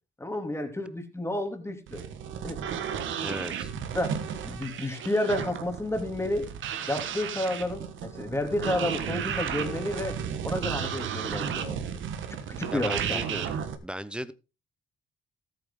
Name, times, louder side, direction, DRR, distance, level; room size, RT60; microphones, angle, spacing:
voice 1, 0.2-2.0 2.4-2.6 3.3-3.4 3.9-6.5 6.9-10.2 10.4-11.8 12.5-13.2, left 1 dB, 15° left, 2.8 m, -31 dB
sound 1, 1.9-13.8, right 8 dB, 75° right, 1.5 m, -33 dB
voice 2, 3.2-3.7 12.7-13.5 13.8-14.3, right 1 dB, 5° right, 0.9 m, -36 dB
14.0 x 8.4 x 3.8 m
cardioid pair, 90°, 20 cm